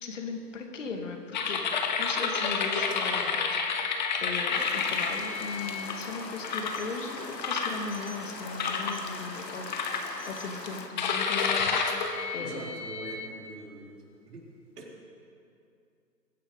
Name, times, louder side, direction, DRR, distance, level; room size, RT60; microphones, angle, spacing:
voice 1, 0.0-1.7 2.0-3.9 4.2-12.7, left 4 dB, 50° left, 4 dB, 2.2 m, -38 dB
sound 1, 1.3-5.9 6.4-6.8 7.4-8.2 8.6-9.0 9.7-10.4 11.0-13.3, left 5 dB, 30° left, 1.1 m, -30 dB
sound 2, 4.5-10.9, left 3 dB, 80° left, 2.1 m, -40 dB
voice 2, 12.4-13.9 14.3-14.4 14.8-15.0, right 2 dB, 65° right, -2 dB, 4.4 m, -43 dB
22.0 x 10.5 x 5.2 m, 2.5 s
hypercardioid pair, 150°, 49 cm